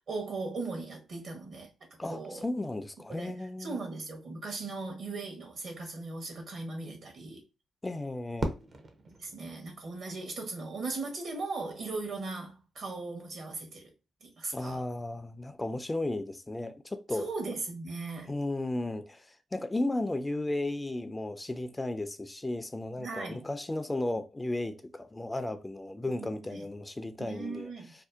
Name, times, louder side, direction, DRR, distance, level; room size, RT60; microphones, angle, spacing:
voice 1, 0.1-1.7 2.1-2.5 3.1-7.4 9.2-13.9 14.2-14.8 17.1-18.3 23.0-23.4 26.1-26.7 27.2-27.9, right 3 dB, 65° right, 0.9 m, -38 dB
voice 2, 2.0-3.8 7.8-8.6 14.5-17.3 18.2-27.7, left 2 dB, 20° left, 0.3 m, -34 dB
Fireworks, 8.4-10.6, right 2 dB, 50° right, 0.5 m, -38 dB
2.6 x 2.0 x 2.3 m
supercardioid pair, 50°, 0 cm